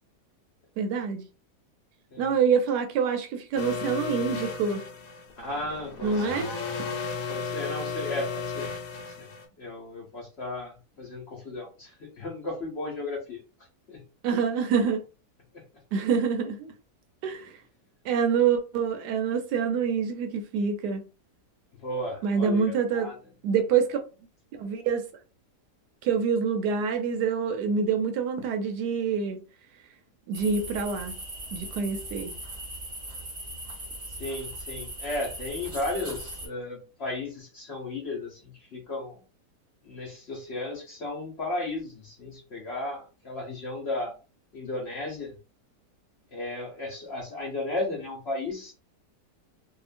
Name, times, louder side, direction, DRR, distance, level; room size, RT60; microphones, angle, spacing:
voice 1, 0.8-1.2 2.2-4.8 6.0-6.5 14.2-15.0 15.9-16.7 17.2-17.6 18.0-21.0 22.2-23.1 23.4-24.0 24.5-25.0 26.0-29.4 30.3-31.1 31.5-32.3, right 6 dB, 80° right, 1.1 m, -26 dB
sound 1, 3.6-9.4, left 5 dB, 70° left, 1.1 m, -34 dB
voice 2, 5.4-6.4 7.3-9.3 9.6-13.4 13.9-14.0 15.5-15.6 21.8-23.2 34.2-39.2 39.8-44.1 44.5-45.3 46.3-48.7, left 2 dB, 50° left, 0.9 m, -35 dB
sound 2, 30.3-36.5, right 1 dB, 25° right, 0.8 m, -39 dB
2.8 x 2.4 x 2.4 m
omnidirectional pair, 1.8 m